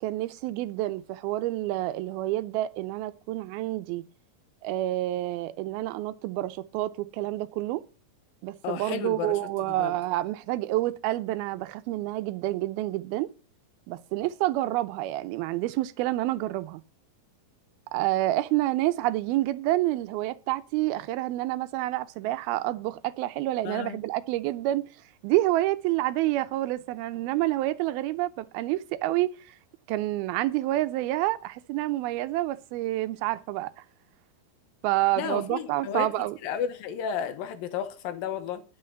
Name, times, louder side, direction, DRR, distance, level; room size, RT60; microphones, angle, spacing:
voice 1, 0.0-4.0 4.6-7.8 8.4-13.3 13.9-16.8 17.9-24.8 25.2-29.3 29.9-33.7 34.8-36.4, right 16 dB, 85° right, 2.5 m, -28 dB
voice 2, 8.6-9.9 23.6-24.0 35.2-36.1 36.4-38.6, left 8 dB, 75° left, 2.7 m, -33 dB
11.0 x 6.4 x 6.8 m
omnidirectional pair, 4.3 m